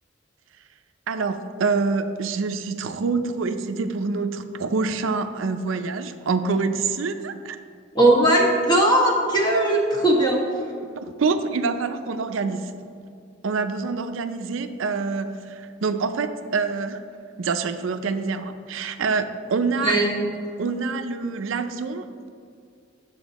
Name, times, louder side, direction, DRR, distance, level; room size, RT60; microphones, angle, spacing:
voice 1, 1.1-7.6 11.0-12.8 13.4-17.0 17.4-20.0 20.6-22.1, right 4 dB, 75° right, 8 dB, 0.5 m, -26 dB
voice 2, 7.9-10.4 19.8-20.2, right 1 dB, 25° left, -2 dB, 1.5 m, -18 dB
8.9 x 7.0 x 4.0 m, 2.3 s
head